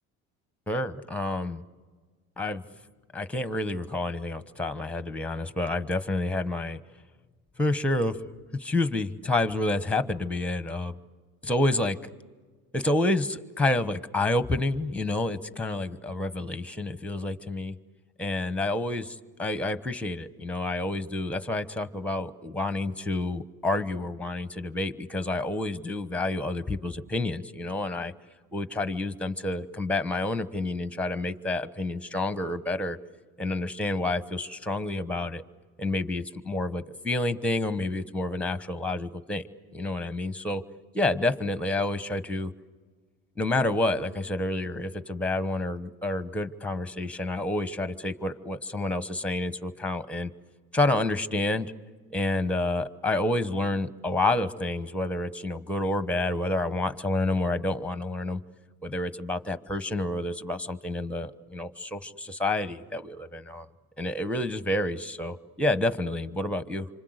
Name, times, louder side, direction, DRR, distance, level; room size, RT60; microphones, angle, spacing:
voice 1, 0.7-1.6 2.4-2.6 3.1-6.8 7.6-8.2 8.5-10.9 11.4-12.0 12.7-17.7 18.2-28.1 28.5-33.0 33.4-35.4 35.8-39.4 39.7-40.6 40.9-42.5 43.4-50.3 50.7-51.7 52.1-58.4 58.8-63.7 64.0-66.9, left 2 dB, 5° left, 12 dB, 1.1 m, -29 dB
27.5 x 25.5 x 8.1 m, 1.4 s
cardioid pair, 110°, 30 cm